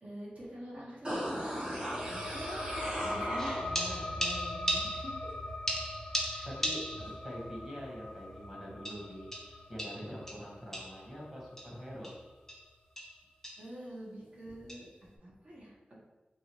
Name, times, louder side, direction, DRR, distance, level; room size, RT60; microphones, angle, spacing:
voice 1, 0.0-1.4 2.0-5.3 6.3-6.5 13.6-14.9 15.2-15.7, right 1 dB, 45° right, -6 dB, 1.3 m, -46 dB
sound 1, 1.0-4.0 4.4-4.5, equal, 30° right, 1.0 m, -37 dB
sound 2, 1.1-12.3, left 2 dB, 65° left, 0.6 m, -42 dB
processed sticks, 3.4-5.3 5.7-7.2 7.6-7.7 8.8-11.1 11.6-11.7 12.0-12.2 12.5-12.7 13.0-13.2 13.4-13.7 14.7-14.9, equal, 10° left, 0.7 m, -37 dB
voice 2, 6.4-12.2, equal, 15° right, -4 dB, 1.4 m, -44 dB
4.7 x 2.6 x 3.1 m, 1.2 s
wide cardioid pair, 95°, 3 cm